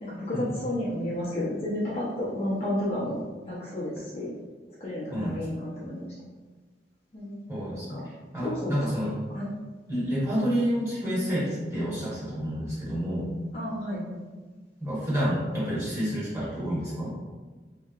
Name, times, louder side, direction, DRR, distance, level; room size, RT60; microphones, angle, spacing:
voice 1, 0.0-3.2 3.4-4.3 4.8-6.1 7.1-7.4 7.9-8.1 8.4-8.7 9.3-9.5 13.5-14.2, left 1 dB, 35° left, -8 dB, 0.7 m, -32 dB
voice 2, 5.1-5.5 7.5-9.2 9.9-13.3 14.8-17.1, equal, 15° right, -9 dB, 1.1 m, -29 dB
3.2 x 2.7 x 2.4 m, 1.3 s
head